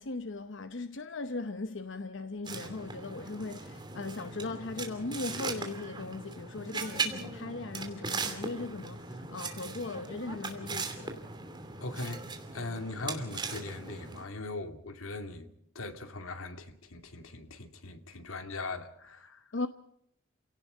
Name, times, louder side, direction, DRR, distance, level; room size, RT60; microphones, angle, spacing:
voice 1, 0.0-11.2 19.5-19.7, left 3 dB, 60° left, 0.8 m, -38 dB
sound 1, 2.4-14.2, right 4 dB, 20° right, 2.8 m, -39 dB
voice 2, 11.8-12.3 12.5-15.5 15.7-19.4, left 2 dB, 85° left, 2.4 m, -40 dB
29.5 x 17.5 x 5.6 m
head